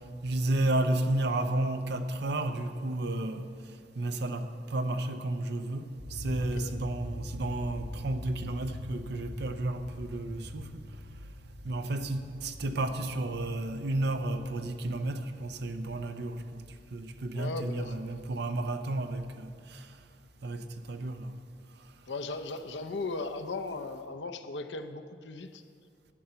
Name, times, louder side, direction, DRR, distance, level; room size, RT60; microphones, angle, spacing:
voice 1, 0.2-3.5 3.9-10.8 11.6-16.6 16.9-19.9 20.4-21.3, right 2 dB, 65° right, 0.8 m, -32 dB
sound 1, 6.0-20.9, left 1 dB, 45° right, 2.7 m, -45 dB
voice 2, 6.4-6.7 17.3-17.9 22.1-25.6, left 3 dB, 75° left, 0.7 m, -37 dB
12.0 x 9.0 x 6.8 m
head